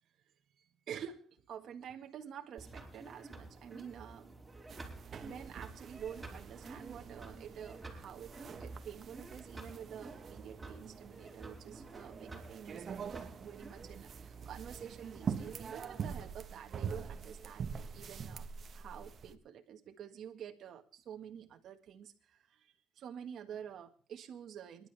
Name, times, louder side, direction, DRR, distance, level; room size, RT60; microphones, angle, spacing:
voice 1, 0.9-4.3 5.2-13.1 13.4-24.9, right 8 dB, 70° right, 4 dB, 1.7 m, -48 dB
sound 1, 2.6-16.1, right 2 dB, 15° right, 4.9 m, -51 dB
sound 2, 4.7-19.3, right 6 dB, 55° right, 1.3 m, -45 dB
28.5 x 11.0 x 3.4 m, 0.42 s
cardioid pair, 90°, 0 cm